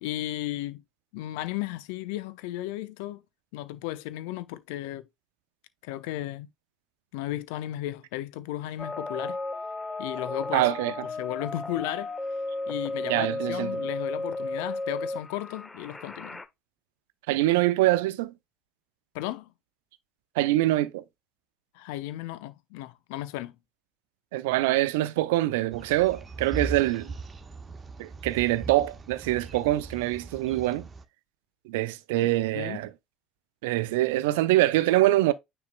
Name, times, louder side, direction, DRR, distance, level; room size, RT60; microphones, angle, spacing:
voice 1, 0.0-0.8 1.1-3.2 3.5-5.0 5.8-6.5 7.1-9.4 10.0-10.7 11.2-12.1 12.7-16.4 19.1-19.5 21.7-23.5 32.5-32.8, left 15 dB, 65° left, 0.7 m, -34 dB
sound 1, 8.8-16.5, left 2 dB, 15° left, 1.3 m, -34 dB
voice 2, 10.5-10.9 13.1-13.8 17.3-18.3 20.4-21.0 24.3-27.1 28.0-30.9 31.7-32.9 33.6-35.3, right 16 dB, 70° right, 0.6 m, -24 dB
sound 2, 25.7-31.0, right 4 dB, 30° right, 1.2 m, -39 dB
9.4 x 4.4 x 2.2 m
figure-of-eight pair, 65°, 0 cm